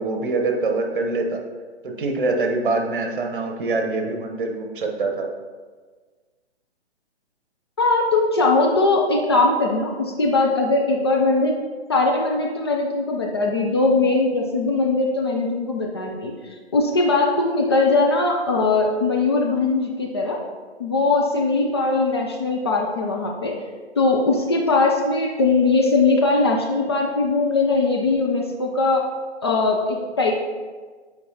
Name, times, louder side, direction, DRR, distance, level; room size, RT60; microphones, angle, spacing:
voice 1, 0.0-1.4 1.8-5.3, right 3 dB, 50° right, 3 dB, 1.1 m, -24 dB
voice 2, 7.8-11.5 11.9-16.3 16.7-20.4 20.8-23.6 24.0-29.1 29.4-30.3, left 3 dB, 25° left, -1 dB, 0.4 m, -20 dB
8.3 x 4.6 x 2.8 m, 1.4 s
figure-of-eight pair, 125°, 33 cm